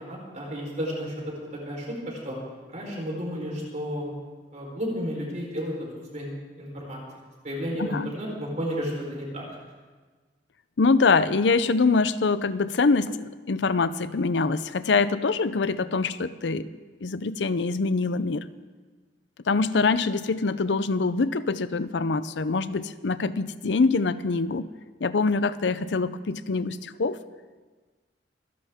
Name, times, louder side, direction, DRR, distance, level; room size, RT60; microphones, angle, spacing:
voice 1, 0.0-2.3 2.7-4.1 4.5-5.7 6.1-6.3 6.6-7.0 7.4-9.4, equal, 45° right, -2 dB, 4.1 m, -32 dB
voice 2, 7.8-8.1 10.8-16.7 17.0-18.4 19.5-24.7 25.0-27.2, left 4 dB, 75° left, 15 dB, 0.6 m, -24 dB
26.0 x 11.0 x 3.6 m, 1.4 s
head